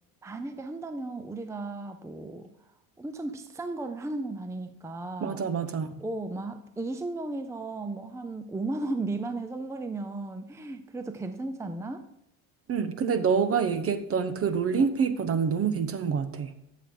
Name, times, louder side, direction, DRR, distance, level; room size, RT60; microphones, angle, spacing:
voice 1, 0.2-2.5 3.0-5.4 6.0-12.0, right 2 dB, 10° right, 8 dB, 0.7 m, -35 dB
voice 2, 5.2-5.9 12.7-16.5, right 6 dB, 40° right, 11 dB, 1.1 m, -26 dB
12.5 x 7.4 x 3.9 m, 0.79 s
supercardioid pair, 100°, 37 cm